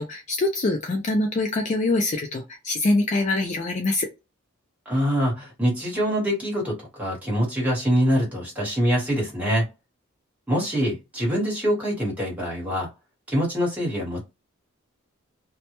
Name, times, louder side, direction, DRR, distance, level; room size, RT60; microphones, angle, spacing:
voice 1, 0.0-4.1, left 2 dB, 35° left, 0.3 m, -24 dB
voice 2, 4.9-9.6 10.5-12.9 13.3-14.2, equal, 5° right, 1.1 m, -24 dB
2.1 x 2.1 x 2.8 m
head